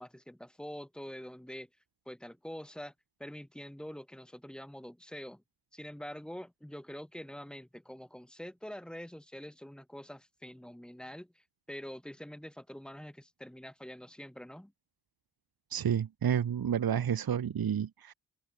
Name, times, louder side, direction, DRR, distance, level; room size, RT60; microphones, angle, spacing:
voice 1, 0.0-1.7 2.1-2.9 3.2-5.4 5.7-14.7, equal, ahead, 2.1 m, -45 dB
voice 2, 15.7-18.1, right 8 dB, 60° right, 1.3 m, -30 dB
open air
wide cardioid pair, 145°, 41 cm